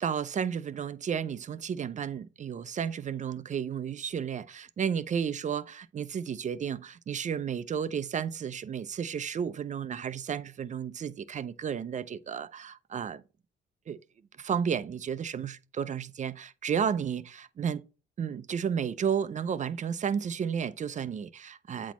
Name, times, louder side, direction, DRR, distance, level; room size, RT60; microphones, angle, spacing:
voice 1, 0.0-13.2 13.9-14.0 14.4-17.8 18.2-21.9, right 7 dB, 40° right, 0.4 m, -32 dB
8.1 x 4.1 x 3.0 m
cardioid pair, 90°, 20 cm